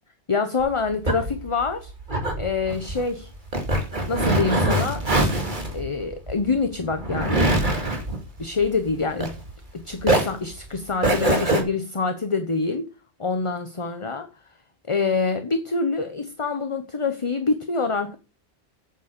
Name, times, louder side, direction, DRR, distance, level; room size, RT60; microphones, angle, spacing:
voice 1, 0.3-1.9 2.4-3.3 4.1-5.0 5.7-7.5 8.4-9.4 9.7-12.8 13.2-14.3 14.9-18.2, left 4 dB, 30° left, 1.0 m, -26 dB
sound 1, 0.6-9.7 10.0-11.6, right 1 dB, 45° right, 2.6 m, -24 dB
9.0 x 8.4 x 6.7 m
omnidirectional pair, 1.2 m